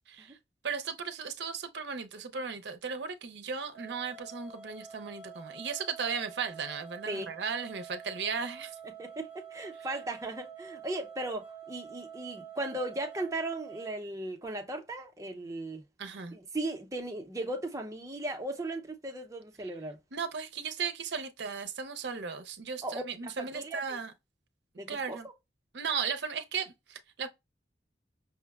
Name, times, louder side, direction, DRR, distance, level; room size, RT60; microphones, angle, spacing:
voice 1, 0.1-0.4 0.6-8.8 16.0-16.4 20.1-24.1 24.9-25.3 25.7-27.3, right 6 dB, 70° right, 0.6 m, -36 dB
sound 1, 3.7-14.0, right 7 dB, 80° left, 1.6 m, -47 dB
voice 2, 9.0-15.8 16.3-20.0 22.8-24.0 24.8-25.2, right 2 dB, 20° right, 0.6 m, -37 dB
5.7 x 2.1 x 2.3 m
head